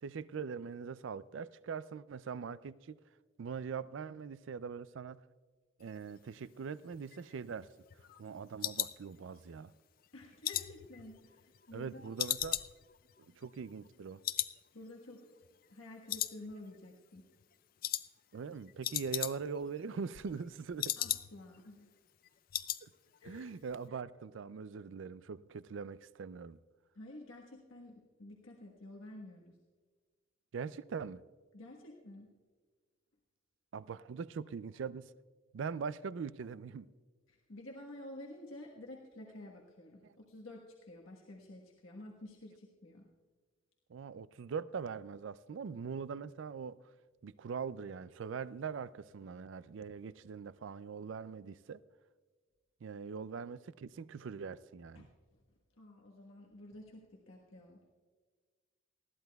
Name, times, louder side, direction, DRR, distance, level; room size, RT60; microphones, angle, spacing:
voice 1, 0.0-3.0 3.4-5.2 5.8-7.7 8.2-9.7 11.7-12.6 13.4-14.2 18.3-21.0 22.8-22.9 23.2-26.6 30.5-31.2 33.7-35.1 35.5-36.9 40.0-40.2 43.9-46.8 47.2-51.8 52.8-55.1, right 5 dB, 70° right, 0.4 m, -42 dB
sound 1, 6.9-9.7 10.0-11.8 12.2-14.0 14.2-14.6 14.9-15.0 15.4-16.9 17.2-17.4 17.8-18.1 18.4-18.5 18.7-19.7 20.0-21.6 21.9-22.0 22.2-22.8 23.1-23.4 23.7-23.8, left 13 dB, 45° left, 0.4 m, -38 dB
voice 2, 10.1-12.1 14.7-17.3 21.0-21.9 23.2-23.6 26.9-29.6 31.5-32.3 37.3-43.1 54.9-55.1 55.8-57.8, left 1 dB, 85° left, 1.3 m, -51 dB
19.5 x 14.5 x 2.3 m
head